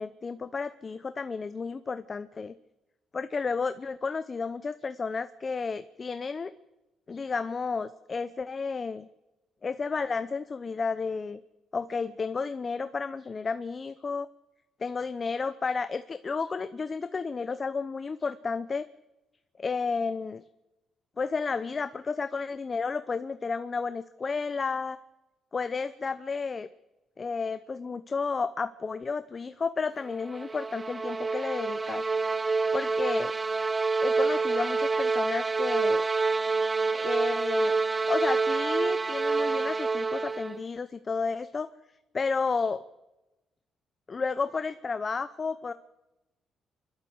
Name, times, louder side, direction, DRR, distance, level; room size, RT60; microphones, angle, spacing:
voice 1, 0.0-2.5 3.1-6.5 7.1-9.1 9.6-11.4 11.7-14.3 14.8-18.8 19.6-20.4 21.2-25.0 25.5-26.7 27.2-32.0 32.7-33.3 34.0-36.1 37.0-37.7 38.1-41.7 42.1-42.8 44.1-45.7, left 4 dB, 35° left, 12 dB, 0.8 m, -32 dB
sound 1, 30.1-40.7, right 4 dB, 25° right, 0.7 m, -27 dB
28.0 x 12.0 x 7.9 m, 1.0 s
cardioid pair, 90°, 0 cm